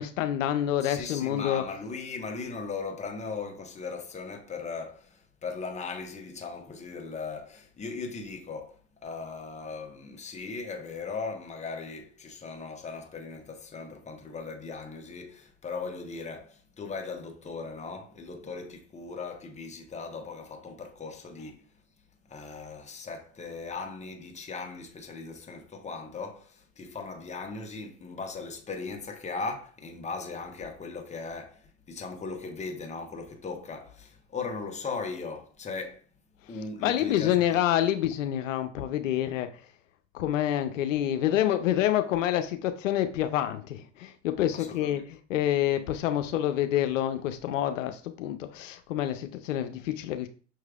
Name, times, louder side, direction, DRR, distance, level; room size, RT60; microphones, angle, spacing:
voice 1, 0.0-1.6 36.8-39.5 40.1-50.3, left 11 dB, 90° left, 0.5 m, -27 dB
voice 2, 0.8-21.6 22.3-36.0 36.5-37.6 44.5-45.0, left 4 dB, 20° left, 1.0 m, -38 dB
5.9 x 3.2 x 2.4 m
hypercardioid pair, 95°, 37 cm